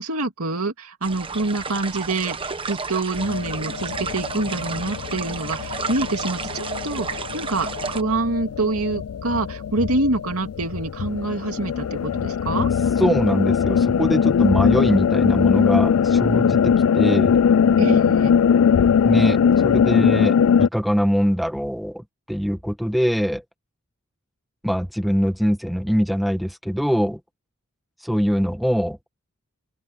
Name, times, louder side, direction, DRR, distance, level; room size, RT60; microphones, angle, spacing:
voice 1, 0.0-12.7 17.8-18.3, right 2 dB, 85° right, 2.4 m, -26 dB
sound 1, 1.0-8.0, right 4 dB, 25° right, 1.1 m, -32 dB
(GF) Radiator stream, 3.2-20.7, left 7 dB, 85° left, 0.4 m, -20 dB
voice 2, 13.0-17.4 19.0-23.4 24.6-27.2 28.0-29.0, equal, ahead, 1.5 m, -23 dB
open air
head